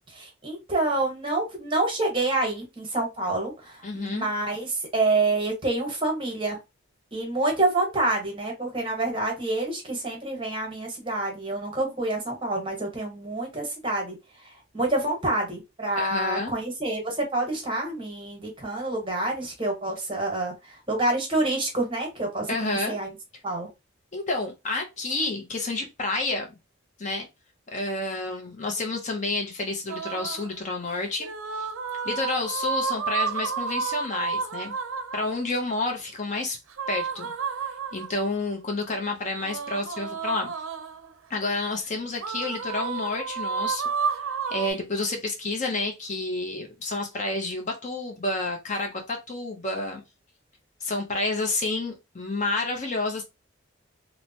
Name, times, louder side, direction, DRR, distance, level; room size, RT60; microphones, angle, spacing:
voice 1, 0.1-6.6 7.1-23.2 23.4-23.7, right 2 dB, 25° right, 1.0 m, -27 dB
voice 2, 3.8-4.3 16.0-16.5 22.5-23.0 24.1-26.5 27.0-27.3 27.7-31.7 32.0-34.7 35.1-36.6 36.9-37.3 37.9-40.5 41.3-50.0 50.8-53.2, left 2 dB, 35° left, 0.5 m, -30 dB
sound 1, 29.9-30.5 31.2-35.4 36.7-38.3 39.4-41.1 42.2-44.7, right 5 dB, 80° right, 0.4 m, -31 dB
3.2 x 2.0 x 2.7 m
head